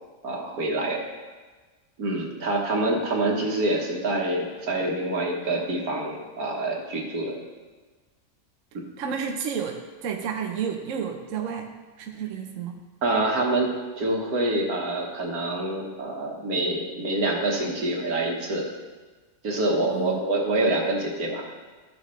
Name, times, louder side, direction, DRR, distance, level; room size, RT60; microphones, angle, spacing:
voice 1, 0.2-1.0 2.0-7.4 8.7-8.8 13.0-13.7 14.0-18.7 19.4-21.7, right 2 dB, 85° right, 0 dB, 1.8 m, -26 dB
voice 2, 9.0-11.7 12.0-12.8 19.8-20.2, right 7 dB, 65° right, 3 dB, 1.0 m, -31 dB
12.5 x 6.4 x 3.2 m, 1.3 s
omnidirectional pair, 1.5 m